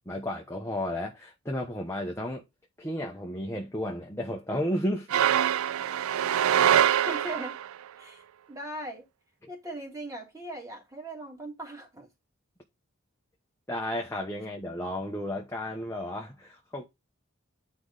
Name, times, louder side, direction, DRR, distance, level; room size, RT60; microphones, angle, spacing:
voice 1, 0.1-2.4 2.8-5.1 9.4-9.5 13.7-16.8, left 1 dB, 15° left, 1.0 m, -33 dB
sound 1, 5.1-7.7, right 10 dB, 85° right, 0.4 m, -24 dB
voice 2, 7.1-7.6 8.0-8.2 8.5-9.1 9.5-12.1, right 1 dB, 15° right, 2.8 m, -39 dB
9.5 x 4.9 x 4.0 m
head